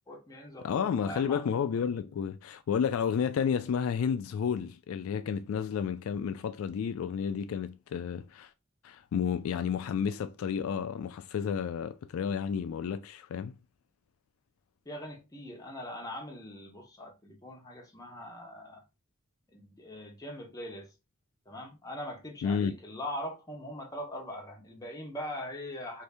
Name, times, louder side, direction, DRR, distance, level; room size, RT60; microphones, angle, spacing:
voice 1, 0.1-1.4 14.9-18.8 19.5-20.9 21.5-26.0, left 1 dB, 20° left, 0.8 m, -41 dB
voice 2, 0.6-8.5 8.8-13.6 22.4-22.7, left 7 dB, 85° left, 0.3 m, -31 dB
2.7 x 2.6 x 3.3 m
head